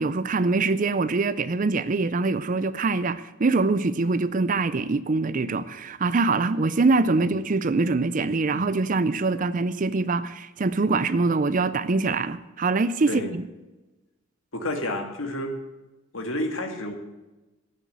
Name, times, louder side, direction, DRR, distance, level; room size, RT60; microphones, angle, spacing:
voice 1, 0.0-13.4, right 3 dB, 40° right, 0.5 m, -24 dB
voice 2, 14.5-15.6 16.1-16.9, left 1 dB, 80° left, 2.0 m, -30 dB
11.5 x 9.3 x 8.0 m
head